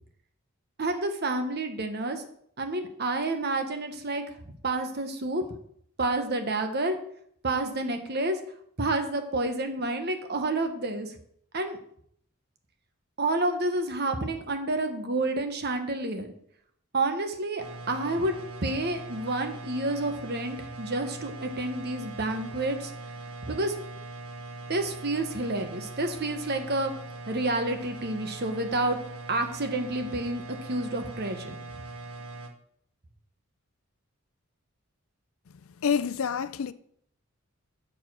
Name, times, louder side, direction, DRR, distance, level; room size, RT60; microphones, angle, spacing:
voice 1, 0.8-2.3 2.6-4.2 4.6-5.4 6.0-7.0 7.4-8.4 8.8-11.2 11.5-11.8 13.2-16.3 16.9-18.3 18.6-22.9 23.5-23.7 24.7-26.9 27.3-29.0 29.3-30.4 30.7-31.8, right 2 dB, 50° right, 1.2 m, -29 dB
sound 1, 17.6-32.5, right 2 dB, 80° right, 1.3 m, -41 dB
voice 2, 35.8-36.7, left 7 dB, 70° left, 0.5 m, -27 dB
7.2 x 6.8 x 6.2 m
head